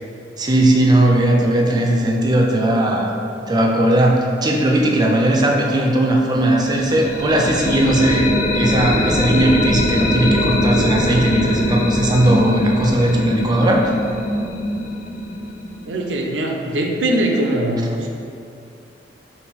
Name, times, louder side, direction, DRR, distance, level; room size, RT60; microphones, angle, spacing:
voice 1, 0.4-3.1 3.5-13.9, right 1 dB, 25° right, 1 dB, 0.4 m, -17 dB
sound 1, 6.6-16.4, left 1 dB, 45° left, 0.4 m, -22 dB
voice 2, 15.8-18.1, right 1 dB, 85° right, 1 dB, 0.5 m, -21 dB
4.5 x 2.5 x 3.4 m, 2.6 s
head